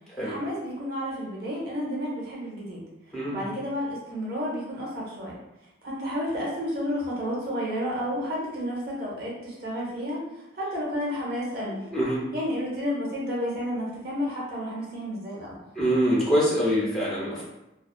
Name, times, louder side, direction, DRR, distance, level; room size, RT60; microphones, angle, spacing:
voice 1, 0.2-5.4 5.8-11.8 12.3-15.6, equal, 55° right, -4 dB, 0.8 m, -31 dB
voice 2, 15.8-17.5, equal, 5° left, -8 dB, 0.7 m, -24 dB
2.3 x 2.3 x 2.3 m, 0.90 s
head